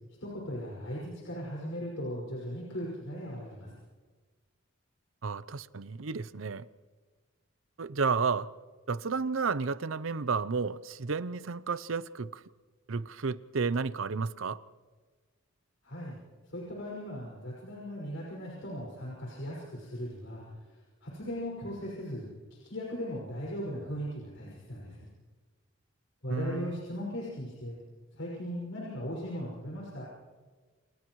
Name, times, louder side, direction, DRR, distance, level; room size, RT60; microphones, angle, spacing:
voice 1, 0.2-3.7 15.8-16.2 16.4-20.8 21.0-25.1 26.2-27.8 28.1-30.0, equal, 75° left, 5.8 m, -38 dB
voice 2, 5.2-6.7 7.8-8.5 8.9-12.4 12.9-14.6 26.3-26.8, right 4 dB, 80° right, 0.7 m, -32 dB
29.5 x 28.5 x 3.2 m
head